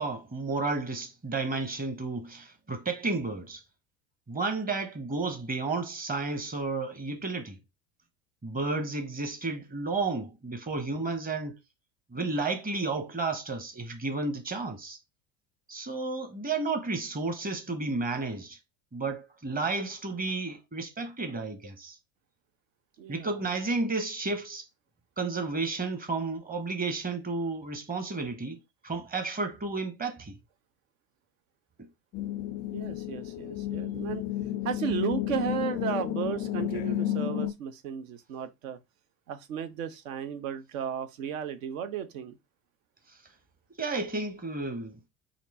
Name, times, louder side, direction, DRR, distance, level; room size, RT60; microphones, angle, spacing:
voice 1, 0.0-3.6 4.3-7.6 8.4-11.6 12.1-15.0 15.7-18.6 18.9-22.0 23.1-24.7 25.2-28.6 28.8-30.4 33.4-33.5 43.8-45.1, right 3 dB, 20° right, 1.1 m, -32 dB
voice 2, 23.0-23.4 32.7-34.3 34.6-38.8 39.3-42.4, right 8 dB, 65° right, 0.8 m, -34 dB
sound 1, 32.1-37.5, left 13 dB, 25° left, 0.3 m, -32 dB
4.2 x 2.9 x 4.2 m
figure-of-eight pair, 65°, 44 cm